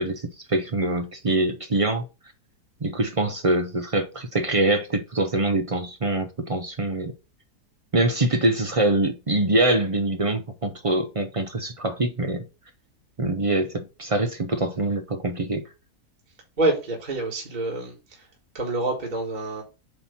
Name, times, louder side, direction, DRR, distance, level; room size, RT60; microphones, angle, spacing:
voice 1, 0.0-2.0 2.8-7.1 7.9-12.4 13.2-15.6, right 2 dB, 55° right, 0.3 m, -24 dB
voice 2, 16.6-18.3 18.5-19.6, right 2 dB, 30° right, 1.6 m, -27 dB
7.8 x 3.0 x 5.6 m
omnidirectional pair, 1.7 m